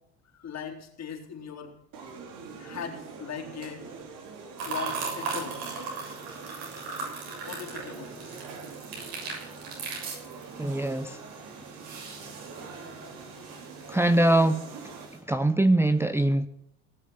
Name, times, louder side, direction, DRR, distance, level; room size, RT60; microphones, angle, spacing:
voice 1, 0.3-1.7 2.6-4.2 4.6-5.6 7.4-8.4 10.5-10.6, left 7 dB, 45° left, 2 dB, 4.1 m, -39 dB
sound 1, 1.9-15.1, right 5 dB, 60° right, 3.8 m, -45 dB
sound 2, 4.6-15.2, right 4 dB, 75° right, 7.1 m, -39 dB
voice 2, 10.6-11.2 13.9-15.0 15.2-16.5, right 1 dB, 5° right, 8 dB, 0.7 m, -23 dB
18.5 x 7.3 x 8.8 m, 0.80 s
supercardioid pair, 80°, 36 cm